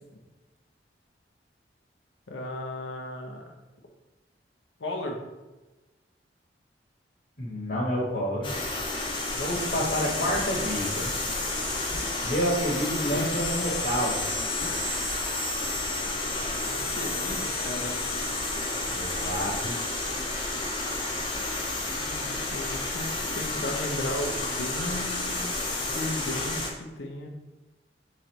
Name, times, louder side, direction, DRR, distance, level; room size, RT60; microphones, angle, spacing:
voice 1, 2.3-3.6 4.8-5.2 16.7-18.1 22.0-27.3, left 1 dB, 85° left, 2 dB, 0.6 m, -36 dB
voice 2, 7.4-8.6 9.3-11.1 12.2-14.2 18.9-19.8, equal, 55° left, -4 dB, 1.1 m, -29 dB
sound 1, 8.4-26.7, left 2 dB, 30° left, 0.7 m, -30 dB
3.8 x 3.1 x 4.4 m, 1.1 s
head